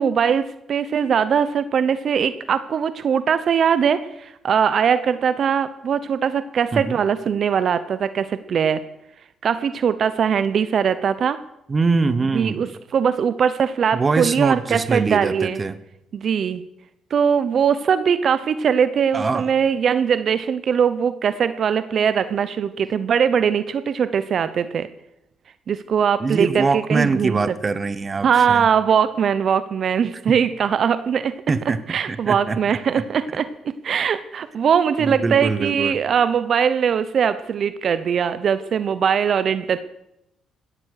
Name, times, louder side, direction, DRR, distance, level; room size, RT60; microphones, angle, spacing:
voice 1, 0.0-8.8 9.4-11.4 12.3-15.6 16.1-16.6 17.1-24.9 25.7-27.4 28.2-31.4 31.9-39.8, right 7 dB, 55° right, 13 dB, 0.9 m, -21 dB
voice 2, 11.7-12.7 13.9-15.8 19.1-19.5 26.2-28.7 30.3-30.4 31.5-32.6 33.0-33.1 35.0-35.9, right 4 dB, 30° right, 15 dB, 1.1 m, -23 dB
16.5 x 12.5 x 6.6 m, 0.83 s
cardioid pair, 90°, 0 cm